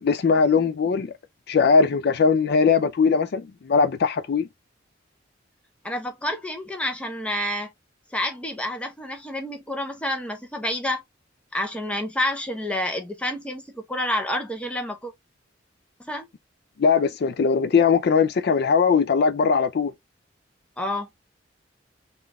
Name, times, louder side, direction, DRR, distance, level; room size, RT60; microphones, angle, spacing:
voice 1, 0.0-1.1 1.5-4.5 16.8-19.9, left 5 dB, 55° left, 0.4 m, -20 dB
voice 2, 5.8-7.7 8.1-11.0 11.5-15.1 16.0-16.3 20.8-21.1, left 1 dB, 5° left, 0.8 m, -29 dB
3.8 x 2.5 x 3.4 m
head